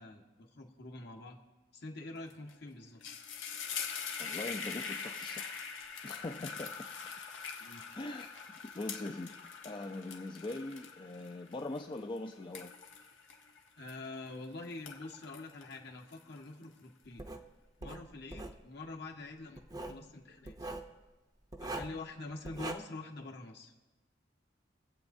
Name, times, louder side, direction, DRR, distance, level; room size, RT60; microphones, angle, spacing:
voice 1, 0.0-1.4 1.7-3.0 7.6-7.8 13.8-17.3 17.8-20.7 21.6-23.7, left 2 dB, 60° left, 2 dB, 1.4 m, -46 dB
sound 1, 2.3-2.5 2.8-14.4 14.7-16.6, left 6 dB, 85° left, 1.2 m, -43 dB
voice 2, 4.2-5.6 6.0-6.8 7.9-8.5 8.7-12.7, left 2 dB, 25° left, 4 dB, 0.4 m, -42 dB
Writing, 17.2-17.4 17.8-18.6 19.6-20.0 20.5-20.9 21.5-22.0 22.4-22.7, right 2 dB, 20° right, 0.6 m, -41 dB
24.5 x 8.2 x 2.7 m, 1.2 s
head